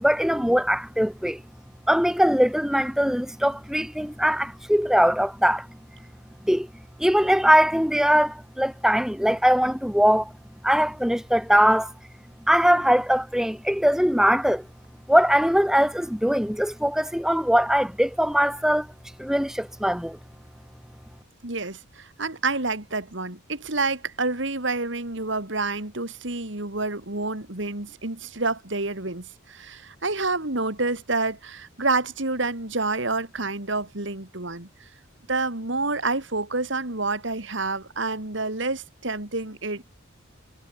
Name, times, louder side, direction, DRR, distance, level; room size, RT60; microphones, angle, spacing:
voice 1, 0.0-1.4 1.9-5.7 6.4-6.7 7.0-10.3 10.6-11.9 12.5-14.7 15.1-18.9 19.2-20.2, equal, ahead, 2.1 m, -21 dB
voice 2, 21.4-34.7 35.3-39.8, right 3 dB, 65° right, 2.8 m, -28 dB
head